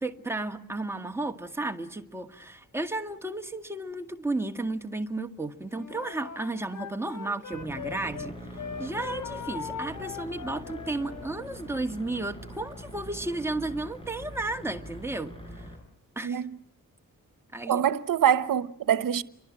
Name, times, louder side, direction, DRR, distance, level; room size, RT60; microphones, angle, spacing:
voice 1, 0.0-15.7 16.2-16.5 17.5-17.9, right 2 dB, 5° right, 1.9 m, -33 dB
Wind instrument woodwind instrument, 5.7-8.3 8.6-11.3, left 7 dB, 70° left, 3.6 m, -40 dB
sound 1, 7.5-15.8, equal, 15° left, 7.3 m, -43 dB
voice 2, 17.7-19.2, right 9 dB, 80° right, 1.1 m, -24 dB
29.5 x 23.5 x 7.5 m
wide cardioid pair, 160°, 33 cm